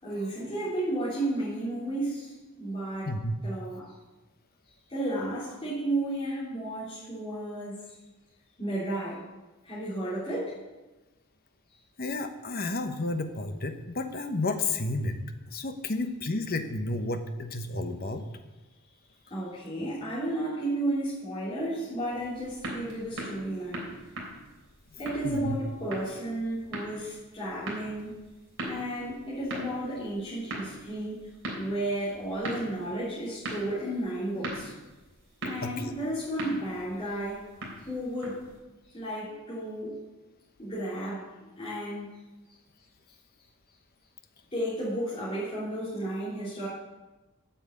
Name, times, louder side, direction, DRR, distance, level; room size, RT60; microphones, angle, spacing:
voice 1, 0.0-3.2 3.4-3.9 4.9-7.8 8.6-9.2 9.6-10.6 19.3-23.9 25.0-28.2 28.6-31.3 31.5-34.7 35.4-37.5 37.8-38.4 38.9-40.0 40.6-42.2 42.4-42.5 44.5-46.7, right 1 dB, 25° left, -12 dB, 3.4 m, -33 dB
voice 2, 12.0-15.2 15.5-18.2 24.9-25.6 35.6-35.9, left 2 dB, 45° left, 7 dB, 1.0 m, -32 dB
sound 1, 22.1-38.6, right 1 dB, 60° right, 3.4 m, -41 dB
8.9 x 7.1 x 8.3 m, 1.1 s
head